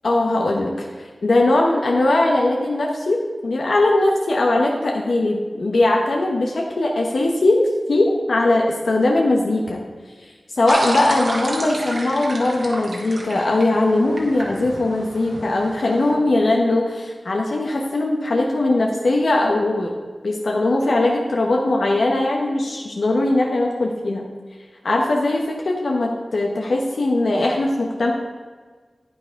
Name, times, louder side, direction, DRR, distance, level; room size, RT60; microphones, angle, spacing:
voice 1, 0.0-0.9 1.2-9.8 10.5-19.9 20.2-24.2 24.8-28.1, left 2 dB, 85° left, 0 dB, 0.9 m, -20 dB
sound 1, 10.7-16.1, right 1 dB, 70° right, 1.8 m, -30 dB
9.6 x 9.1 x 3.6 m, 1.5 s
wide cardioid pair, 55°, 0 cm